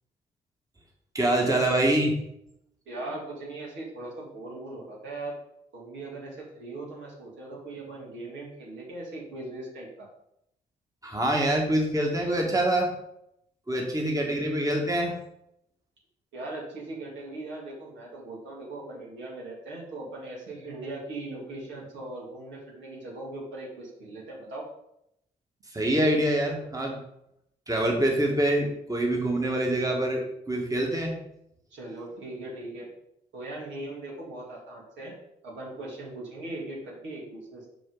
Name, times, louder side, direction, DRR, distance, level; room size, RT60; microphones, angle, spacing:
voice 1, 1.1-2.1 11.0-12.9 13.7-15.1 25.7-27.0 27.7-30.2 30.5-31.2, right 1 dB, 20° right, 0 dB, 1.6 m, -25 dB
voice 2, 2.9-5.3 5.7-10.1 14.1-14.2 16.3-24.6 31.7-32.9 33.3-35.2 35.4-37.7, right 2 dB, 70° right, -4 dB, 2.2 m, -39 dB
5.6 x 5.0 x 3.9 m, 0.79 s
hypercardioid pair, 40°, 20 cm